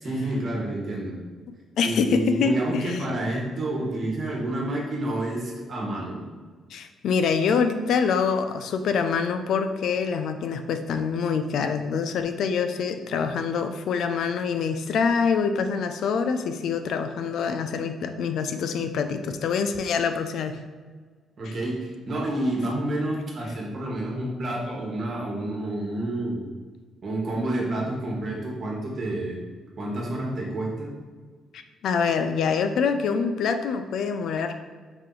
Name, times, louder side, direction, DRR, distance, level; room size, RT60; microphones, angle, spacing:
voice 1, 0.0-1.2 1.8-6.2 21.4-26.5 27.0-29.4 29.8-30.9, right 1 dB, 50° right, -2 dB, 1.3 m, -29 dB
voice 2, 1.8-3.0 6.7-20.6 21.5-21.6 31.5-34.6, left 6 dB, 75° left, 8 dB, 0.4 m, -25 dB
4.9 x 2.8 x 3.8 m, 1.5 s
cardioid pair, 90°, 0 cm